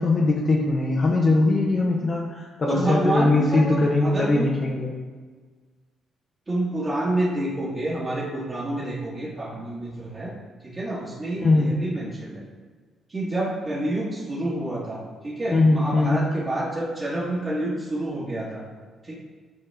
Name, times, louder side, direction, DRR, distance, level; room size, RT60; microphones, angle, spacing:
voice 1, 0.0-4.9 11.4-11.7 15.5-16.2, left 2 dB, 45° left, -2 dB, 0.9 m, -21 dB
voice 2, 2.7-4.5 6.5-10.3 10.6-12.4 13.1-18.6 19.0-19.1, right 1 dB, 30° right, -10 dB, 1.8 m, -28 dB
9.4 x 4.2 x 3.5 m, 1.5 s
cardioid pair, 90°, 0 cm